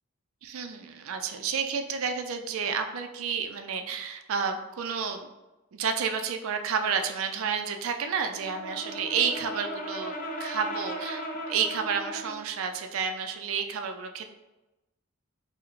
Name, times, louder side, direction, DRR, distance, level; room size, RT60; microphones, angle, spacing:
voice 1, 0.4-5.3 5.7-14.3, right 6 dB, 70° right, 6 dB, 0.4 m, -30 dB
Brass instrument, 8.3-12.5, equal, 40° left, 0.4 m, -37 dB
4.7 x 2.1 x 3.1 m, 1.0 s
head